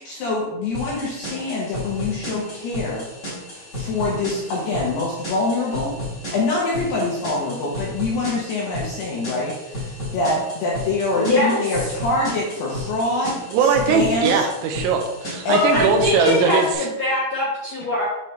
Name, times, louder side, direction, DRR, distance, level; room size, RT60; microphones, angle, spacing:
voice 1, 0.0-3.0 3.5-5.9 6.3-14.5 15.5-15.6, left 2 dB, 75° left, -4 dB, 2.4 m, -25 dB
sound 1, 0.7-16.7, left 1 dB, 30° left, 1.3 m, -33 dB
voice 2, 11.2-11.7 15.5-18.0, left 1 dB, 50° left, -9 dB, 2.0 m, -22 dB
voice 3, 13.5-16.9, right 5 dB, 80° right, 4 dB, 3.4 m, -20 dB
8.3 x 5.2 x 3.2 m, 1.0 s
omnidirectional pair, 6.0 m